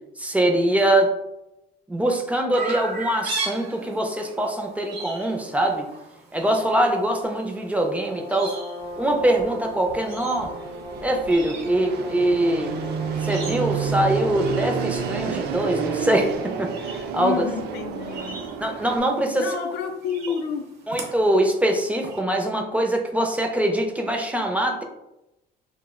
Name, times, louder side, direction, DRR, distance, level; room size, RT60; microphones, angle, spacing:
voice 1, 0.2-1.1 1.9-5.9 6.3-8.6 9.0-10.5 11.0-12.8 13.2-17.4 18.6-19.5 20.9-24.8, right 1 dB, 10° right, 2 dB, 0.3 m, -23 dB
Chirp tweet, 2.5-22.2, right 3 dB, 90° right, 0.8 m, -40 dB
Brass instrument, 7.9-15.6, left 2 dB, 30° left, 0.6 m, -39 dB
Fixed-wing aircraft airplane, 8.8-19.0, right 6 dB, 70° right, 0.4 m, -30 dB
voice 2, 17.2-18.5 19.4-20.7, left 7 dB, 80° left, 4 dB, 0.5 m, -29 dB
2.4 x 2.0 x 3.5 m, 0.90 s
cardioid pair, 110°, 17 cm